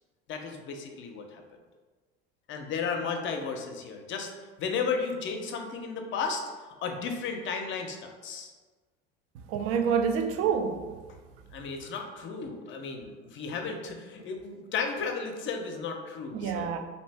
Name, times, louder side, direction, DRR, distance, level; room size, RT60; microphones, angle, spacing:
voice 1, 0.3-1.4 2.5-4.3 4.6-6.4 6.8-8.5 11.5-16.7, left 5 dB, 40° left, 0.6 m, -34 dB
voice 2, 9.3-11.0 11.3-11.4 11.8-11.9 16.3-16.8, right 7 dB, 50° right, 0.4 m, -28 dB
2.7 x 2.5 x 3.3 m
hypercardioid pair, 75°, 29 cm